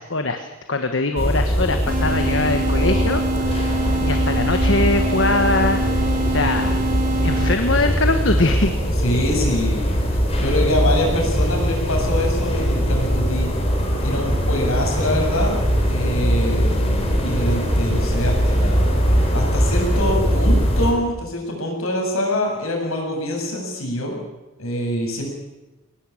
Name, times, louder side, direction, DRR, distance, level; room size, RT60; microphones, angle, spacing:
voice 1, 0.0-3.7 4.0-5.8 6.3-6.8 7.2-8.7, left 2 dB, 60° left, 6 dB, 1.4 m, -22 dB
sound 1, 1.2-20.9, equal, 30° left, 4.4 m, -21 dB
sound 2, 1.9-7.9, right 2 dB, 40° right, 1.5 m, -25 dB
voice 2, 9.0-9.9 10.4-13.5 14.0-15.6 15.8-18.8 19.3-24.2 24.6-25.3, left 1 dB, 75° left, 1 dB, 7.4 m, -24 dB
22.5 x 19.0 x 8.7 m, 1.0 s
head